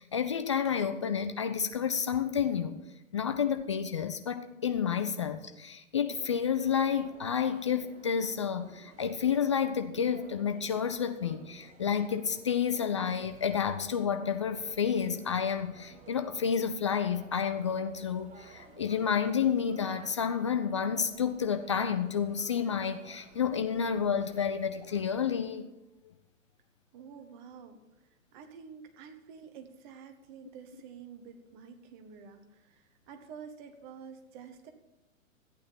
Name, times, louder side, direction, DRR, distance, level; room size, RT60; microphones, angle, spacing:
voice 1, 0.0-2.8 3.1-25.7, left 7 dB, 25° left, 9 dB, 0.3 m, -30 dB
sound 1, 6.1-25.5, right 4 dB, 20° right, 1.6 m, -56 dB
voice 2, 26.9-34.7, right 6 dB, 35° right, 7 dB, 1.5 m, -49 dB
13.5 x 9.0 x 5.6 m, 1.0 s
figure-of-eight pair, 105°, 40 cm